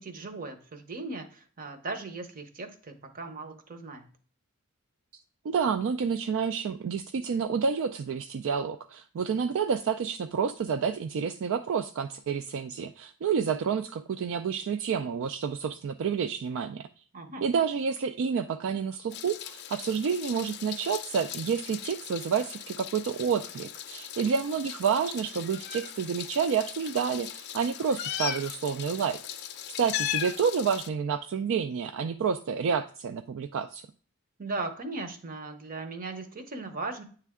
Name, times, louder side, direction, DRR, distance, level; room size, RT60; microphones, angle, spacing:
voice 1, 0.0-4.1 17.1-17.5 34.4-37.0, right 3 dB, 40° right, 7 dB, 0.8 m, -38 dB
voice 2, 5.4-16.9 17.4-29.2 29.8-33.9, right 6 dB, 60° right, 8 dB, 0.3 m, -29 dB
Meow, 19.1-30.9, left 11 dB, 50° left, 0.5 m, -38 dB
9.1 x 3.3 x 3.5 m, 0.43 s
head